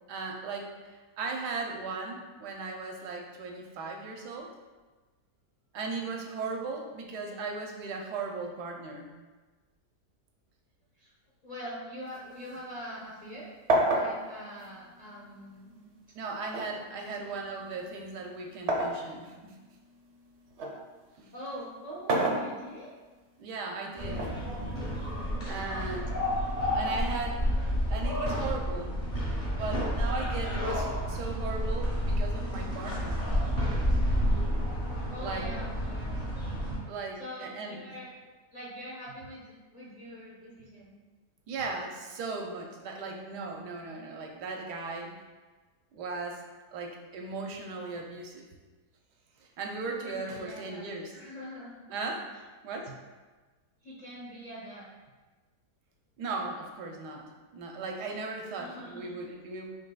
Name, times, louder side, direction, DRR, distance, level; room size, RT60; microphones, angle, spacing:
voice 1, 0.1-4.5 5.7-9.1 16.2-19.6 21.2-21.3 23.4-24.2 25.5-26.1 26.7-27.4 27.9-29.0 29.5-33.3 35.2-35.5 36.9-37.8 41.5-45.1 45.9-46.4 46.7-48.5 49.4-51.1 51.9-52.3 52.6-53.0 56.2-59.7, right 3 dB, 85° right, 2 dB, 1.2 m, -37 dB
voice 2, 11.4-13.5 13.9-15.8 16.9-17.4 21.3-22.9 25.6-26.0 26.8-27.2 35.1-36.2 37.2-38.1 38.5-41.0 49.9-50.9 51.1-51.7 52.3-52.4 53.8-54.9 58.5-59.2, equal, 75° left, -7 dB, 0.3 m, -44 dB
sound 1, 12.1-13.3 13.7-15.6 16.5-19.0 19.6-20.8 21.8-23.0 24.1-25.2, right 2 dB, 60° right, 0.7 m, -31 dB
sound 2, 24.0-36.8, equal, 35° left, 1.0 m, -30 dB
5.5 x 3.1 x 2.2 m, 1.3 s
omnidirectional pair, 1.8 m